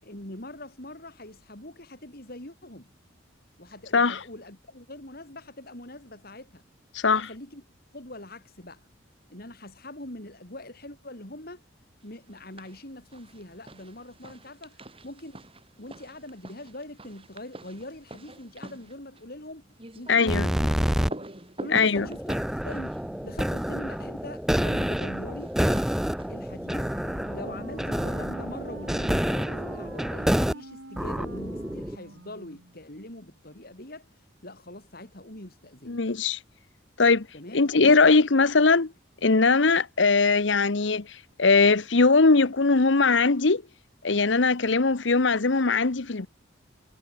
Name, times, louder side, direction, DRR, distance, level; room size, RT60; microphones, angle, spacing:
voice 1, 0.0-2.9 3.6-6.6 7.1-7.6 7.9-8.8 9.3-11.6 12.0-15.4 15.8-19.6 19.9-20.8 21.6-22.3 22.6-25.6 26.3-26.9 27.3-34.1 34.4-36.0 37.3-37.6 44.7-44.8, left 1 dB, 50° left, 6.0 m, -43 dB
voice 2, 6.9-7.3 20.1-20.5 21.7-22.1 35.9-36.4 37.0-37.3 37.5-38.9 39.2-43.6 44.0-46.3, left 4 dB, 70° left, 1.0 m, -20 dB
sound 1, 12.3-12.8 13.1-24.1 25.4-26.6, right 1 dB, 30° right, 5.5 m, -45 dB
sound 2, 20.3-21.1 22.0-30.5 31.0-32.0, equal, ahead, 0.4 m, -28 dB
Wind instrument woodwind instrument, 26.6-32.8, right 1 dB, 90° right, 5.5 m, -45 dB
head